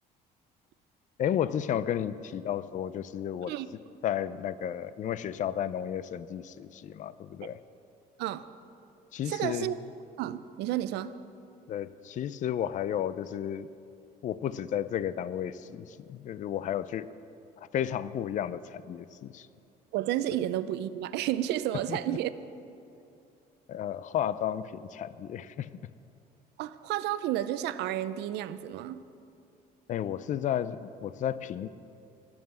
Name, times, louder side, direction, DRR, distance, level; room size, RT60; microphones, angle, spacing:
voice 1, 1.2-3.5 4.0-7.6 9.1-9.7 11.7-13.7 14.2-17.1 17.6-19.5 21.9-22.2 23.7-25.7 29.9-31.7, left 10 dB, 50° left, 15 dB, 0.5 m, -33 dB
voice 2, 9.3-9.8 10.2-11.1 19.9-22.3 26.6-29.0, right 13 dB, 85° right, 13 dB, 0.6 m, -31 dB
19.5 x 7.3 x 7.6 m, 2.7 s
cardioid pair, 110°, 17 cm